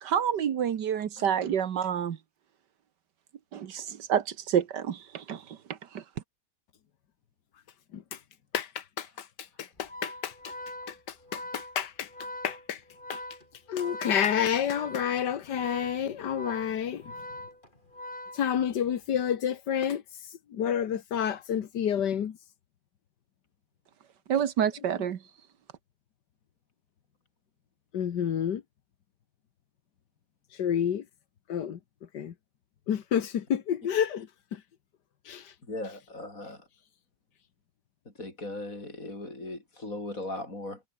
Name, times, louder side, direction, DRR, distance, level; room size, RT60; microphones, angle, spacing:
voice 1, 0.0-2.2 3.5-5.4 5.9-6.0 24.3-25.2, right 9 dB, 80° right, 1.9 m, -28 dB
voice 2, 8.5-10.5 10.9-12.1 12.4-12.8 13.1-13.2 13.7-17.1 18.3-22.4 27.9-28.6 30.5-31.1 31.5-31.8 32.1-32.3 32.9-34.6 35.3-35.5, left 9 dB, 80° left, 1.9 m, -30 dB
Organ, 9.8-18.9, left 1 dB, 30° left, 7.9 m, -43 dB
voice 3, 35.7-36.7 38.1-40.8, left 2 dB, 50° left, 6.3 m, -38 dB
omnidirectional pair, 1.8 m